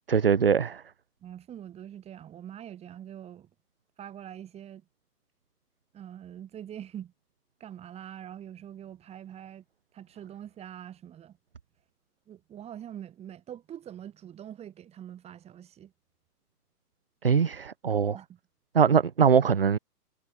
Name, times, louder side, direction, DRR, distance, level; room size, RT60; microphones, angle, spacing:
voice 1, 0.1-0.8 17.2-18.2 18.7-19.8, right 7 dB, 40° right, 0.4 m, -22 dB
voice 2, 1.2-3.5 4.0-4.8 5.9-7.1 7.6-9.6 9.9-11.4 12.3-15.9 18.1-18.4, right 10 dB, 10° right, 7.9 m, -44 dB
hypercardioid pair, 160°, 48 cm